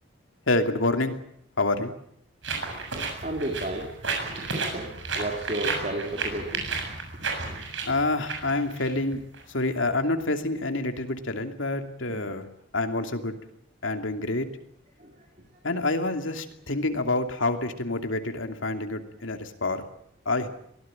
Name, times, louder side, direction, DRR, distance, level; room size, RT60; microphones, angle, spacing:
voice 1, 0.5-1.2 1.6-1.9 7.9-9.2 9.5-12.5 12.7-13.4 13.8-14.5 15.6-19.8 20.2-20.5, left 2 dB, 85° left, 6 dB, 2.7 m, -27 dB
sound 1, 2.4-9.4, right 4 dB, 75° right, 7.1 m, -32 dB
voice 2, 3.2-6.8 7.4-7.9 12.1-12.3 15.0-15.1, right 1 dB, 40° right, 1 dB, 3.4 m, -34 dB
23.5 x 18.0 x 9.0 m, 0.70 s
head